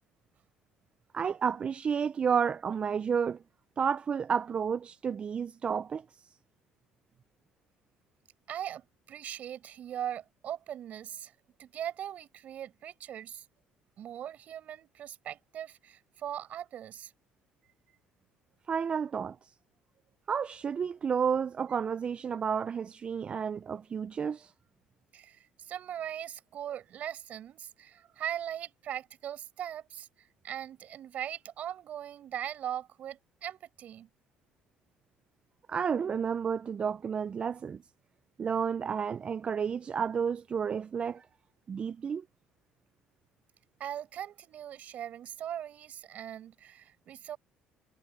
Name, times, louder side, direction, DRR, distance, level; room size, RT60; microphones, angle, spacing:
voice 1, 1.1-3.4 3.8-6.0 18.7-19.5 20.3-24.5 35.7-37.8 38.4-41.3 41.7-42.2, right 7 dB, 40° right, 0.5 m, -31 dB
voice 2, 8.5-11.3 11.6-13.5 14.0-17.1 25.1-30.1 30.4-34.1 43.8-47.4, right 10 dB, 60° right, 5.7 m, -40 dB
supercardioid pair, 75°, 3 cm